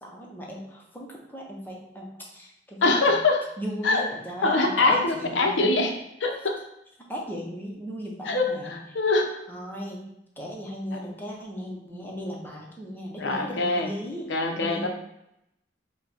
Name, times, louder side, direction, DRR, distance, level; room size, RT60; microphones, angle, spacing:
voice 1, 0.0-3.2 3.6-5.7 7.1-8.8 9.5-10.1 10.4-14.9, equal, 10° left, -2 dB, 0.8 m, -36 dB
voice 2, 2.8-3.4 3.8-4.0 4.4-5.9 6.2-6.6 8.3-9.3 13.2-13.9 14.3-14.9, left 3 dB, 75° left, 3 dB, 0.7 m, -23 dB
4.8 x 2.3 x 4.2 m, 0.80 s
head